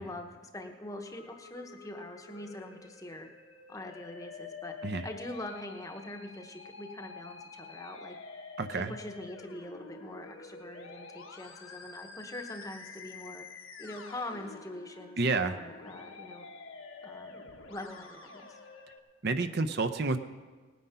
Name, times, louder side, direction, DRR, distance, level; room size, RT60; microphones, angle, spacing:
voice 1, 0.0-3.3 3.7-8.2 8.7-16.5 17.0-17.4 17.7-18.6, left 1 dB, 15° left, 5 dB, 0.9 m, -43 dB
Musical instrument, 1.0-19.0, left 4 dB, 80° left, 1.4 m, -48 dB
voice 2, 8.6-8.9 15.2-15.6 19.2-20.2, right 3 dB, 50° right, 9 dB, 0.6 m, -29 dB
19.0 x 9.4 x 5.6 m, 1.4 s
head